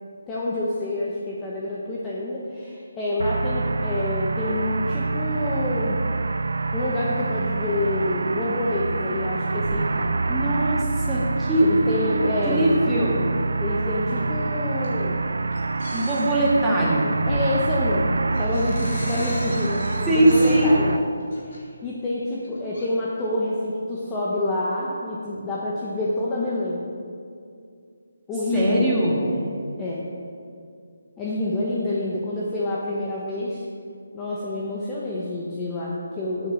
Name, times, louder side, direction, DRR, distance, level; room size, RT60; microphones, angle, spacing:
voice 1, 0.3-6.0 6.7-10.2 11.6-12.7 13.6-15.3 17.3-21.0 21.4-26.8 28.3-28.9 29.2-29.4 29.8-30.0 31.2-33.6 34.1-36.5, left 1 dB, 10° left, -6 dB, 0.9 m, -27 dB
sound 1, 3.2-21.0, right 3 dB, 70° right, 0.4 m, -26 dB
voice 2, 10.3-11.8 12.1-13.2 15.9-17.1 20.1-20.7 28.5-29.2, right 1 dB, 5° right, -9 dB, 1.7 m, -21 dB
sound 2, 11.2-11.5 12.4-12.5 13.2-13.3 13.7-14.4 14.7-15.1 15.5-16.7 17.3-17.7 17.9-18.0 18.3-21.6 22.3-22.8, left 1 dB, 45° left, 2.9 m, -38 dB
9.1 x 7.4 x 7.4 m, 2.3 s
hypercardioid pair, 170°, 0 cm